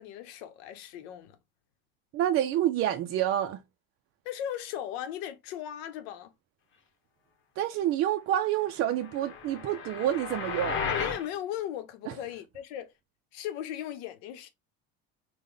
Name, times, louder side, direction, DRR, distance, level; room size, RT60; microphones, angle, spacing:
voice 1, 0.0-1.4 4.2-6.3 10.9-12.9 13.3-14.5, left 11 dB, 75° left, 0.8 m, -37 dB
voice 2, 2.1-3.6 7.6-10.8 12.1-12.2, right 12 dB, 45° right, 0.4 m, -28 dB
sound 1, 9.0-11.3, left 6 dB, 40° left, 0.9 m, -34 dB
3.6 x 2.2 x 3.3 m
supercardioid pair, 90°, 31 cm